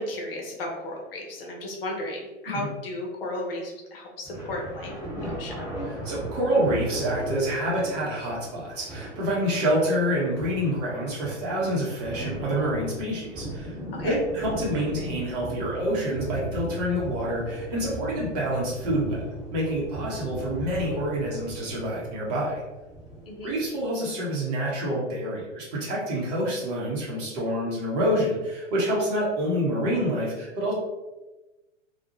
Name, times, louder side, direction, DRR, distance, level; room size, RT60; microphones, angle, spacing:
voice 1, 0.0-5.6 14.0-14.1 23.2-23.5, left 1 dB, 50° left, -1 dB, 0.7 m, -34 dB
sound 1, 4.2-23.8, right 1 dB, 10° right, 0.9 m, -37 dB
voice 2, 5.9-13.8 14.0-19.2 19.5-22.6 23.4-30.7, equal, 35° right, -5 dB, 0.8 m, -27 dB
2.3 x 2.1 x 2.8 m, 1.1 s
figure-of-eight pair, 105°, 37 cm